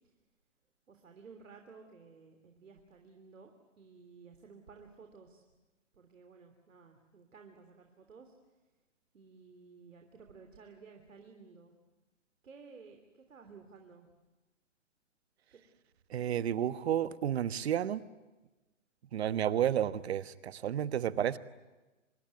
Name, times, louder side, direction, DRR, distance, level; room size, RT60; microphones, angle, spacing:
voice 1, 0.9-5.4 5.9-8.4 9.1-11.7 12.4-14.1 15.5-15.6, right 5 dB, 85° right, 4 dB, 3.3 m, -55 dB
voice 2, 16.1-18.0 19.1-21.4, right 10 dB, 55° right, 14 dB, 1.3 m, -31 dB
25.5 x 21.5 x 9.5 m, 1.1 s
hypercardioid pair, 150°, 38 cm